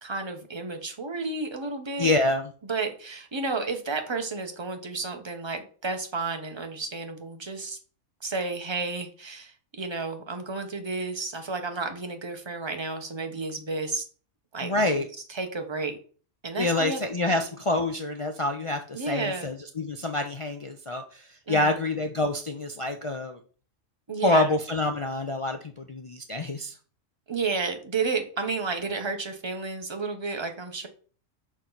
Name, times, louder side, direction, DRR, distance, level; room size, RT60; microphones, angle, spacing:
voice 1, 0.0-2.1 2.7-7.8 8.2-14.0 14.5-14.8 15.3-16.0 16.4-17.0 17.2-17.4 18.9-19.5 21.5-21.8 24.1-24.5 27.3-30.9, right 4 dB, 25° right, 5 dB, 0.8 m, -32 dB
voice 2, 2.0-2.5 14.6-15.1 16.6-23.4 24.2-26.8, left 2 dB, 55° left, 4 dB, 0.3 m, -27 dB
6.0 x 4.4 x 3.9 m, 0.40 s
omnidirectional pair, 1.3 m